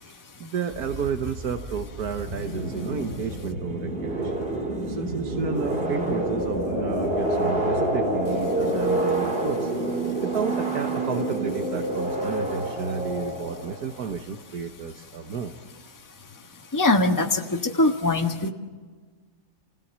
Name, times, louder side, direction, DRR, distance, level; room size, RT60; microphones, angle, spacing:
voice 1, 0.0-4.4 4.8-15.6, right 6 dB, 65° right, 5 dB, 1.6 m, -32 dB
sound 1, 0.7-14.1, right 1 dB, 35° right, 3.0 m, -28 dB
voice 2, 16.7-17.4 17.8-18.5, left 2 dB, 10° left, 3 dB, 1.4 m, -21 dB
29.0 x 17.5 x 7.4 m, 1.5 s
omnidirectional pair, 1.8 m